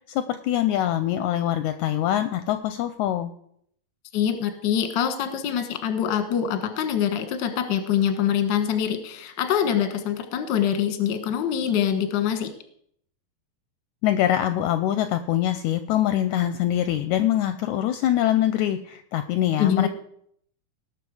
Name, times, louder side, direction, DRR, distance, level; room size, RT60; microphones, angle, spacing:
voice 1, 0.1-3.3 14.0-19.9, left 12 dB, 80° left, 10 dB, 1.8 m, -24 dB
voice 2, 4.1-12.5 19.6-19.9, left 9 dB, 55° left, 8 dB, 1.3 m, -24 dB
18.5 x 6.5 x 4.8 m, 0.68 s
omnidirectional pair, 3.8 m